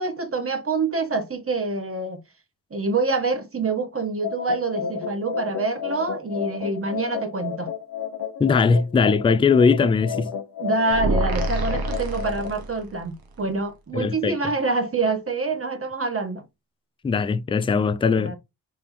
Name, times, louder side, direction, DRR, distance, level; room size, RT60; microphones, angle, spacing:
voice 1, 0.0-2.2 2.7-7.7 10.6-16.4 18.2-18.4, right 3 dB, 35° right, 1.0 m, -26 dB
sound 1, 4.2-12.5, left 7 dB, 60° left, 0.8 m, -32 dB
voice 2, 8.4-10.3 13.9-14.4 17.0-18.4, left 5 dB, 15° left, 0.3 m, -20 dB
sound 2, 10.9-13.0, right 2 dB, 55° right, 1.2 m, -26 dB
3.4 x 3.3 x 3.1 m
supercardioid pair, 50°, 42 cm